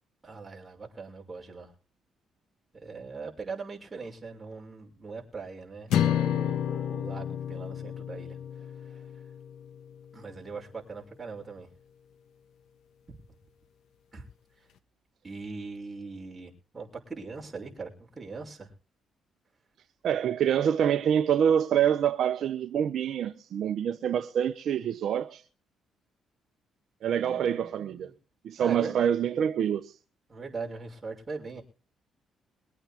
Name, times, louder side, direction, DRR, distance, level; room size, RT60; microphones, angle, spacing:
voice 1, 0.2-1.7 2.7-9.2 10.1-11.7 13.1-13.2 14.1-14.2 14.6-14.7 15.2-18.7 27.1-28.1 28.6-29.1 30.3-31.6, right 4 dB, 20° right, 6.1 m, -41 dB
sound 1, 5.9-10.3, left 10 dB, 80° left, 1.4 m, -31 dB
voice 2, 20.0-25.4 27.0-28.1 28.4-29.9, right 9 dB, 70° right, 0.9 m, -26 dB
23.0 x 8.9 x 3.6 m
cardioid pair, 90°, 0 cm